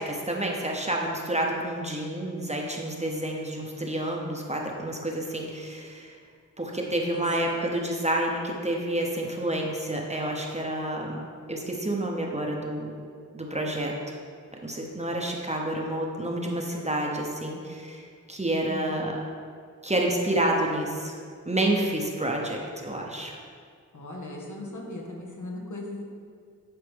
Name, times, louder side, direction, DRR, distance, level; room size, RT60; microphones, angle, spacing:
voice 1, 0.0-6.1 6.6-11.2 11.5-12.9 13.3-13.9 14.6-19.2 19.8-21.1 21.5-23.4, right 1 dB, 20° right, -1 dB, 1.0 m, -29 dB
voice 2, 18.7-19.0 23.9-26.0, left 2 dB, 65° left, -2 dB, 1.3 m, -38 dB
10.5 x 4.2 x 3.6 m, 2.1 s
cardioid pair, 40°, 32 cm